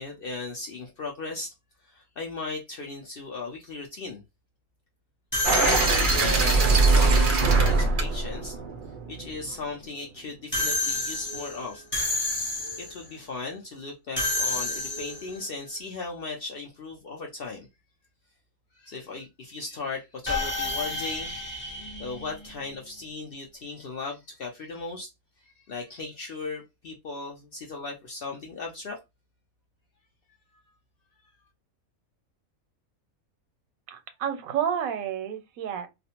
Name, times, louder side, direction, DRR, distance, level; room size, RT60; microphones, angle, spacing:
voice 1, 0.0-1.5 1.8-4.2 5.6-8.6 9.1-11.8 12.3-12.4 12.8-17.7 18.7-21.3 22.0-25.1 25.4-29.0, left 3 dB, 65° left, 0.5 m, -37 dB
sound 1, 5.3-6.6 10.5-13.0 14.2-15.4 20.3-22.8, left 2 dB, 15° left, 0.5 m, -30 dB
sound 2, 5.4-9.5, right 3 dB, 55° right, 0.6 m, -22 dB
voice 2, 33.9-35.9, right 9 dB, 90° right, 1.0 m, -30 dB
2.4 x 2.0 x 2.8 m
omnidirectional pair, 1.4 m